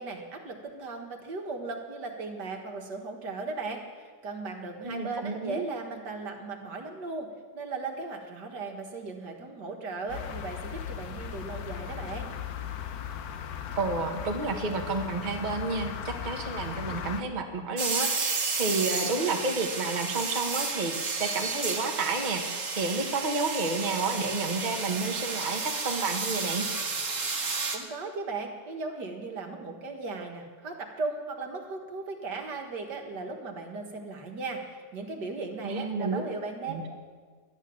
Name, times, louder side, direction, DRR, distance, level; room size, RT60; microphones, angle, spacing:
voice 1, 0.0-3.8 4.2-7.3 7.5-12.3 27.7-34.6 34.9-37.0, right 3 dB, 60° right, 3 dB, 2.0 m, -37 dB
voice 2, 4.8-5.7 13.8-22.4 22.7-26.6 35.6-36.2 36.7-36.8, right 3 dB, 25° right, 3 dB, 1.2 m, -30 dB
sound 1, 10.1-17.2, left 8 dB, 60° left, 1.2 m, -37 dB
sound 2, 17.8-27.8, right 4 dB, 45° right, 1.8 m, -32 dB
12.5 x 8.2 x 9.9 m, 1.5 s
omnidirectional pair, 2.1 m